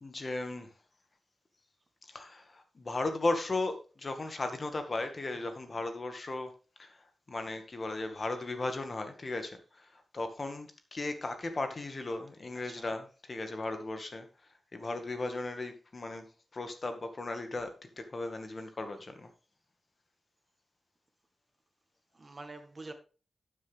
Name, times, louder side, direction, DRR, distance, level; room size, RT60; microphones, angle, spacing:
voice 1, 0.0-0.7 2.1-6.5 6.8-7.0 7.3-14.3 14.7-16.3 16.5-17.7 18.0-19.3, left 2 dB, 40° left, 1.9 m, -36 dB
voice 2, 5.4-5.7 12.5-13.0 22.1-22.9, right 2 dB, 35° right, 1.9 m, -48 dB
12.0 x 7.7 x 3.6 m
wide cardioid pair, 90°, 0 cm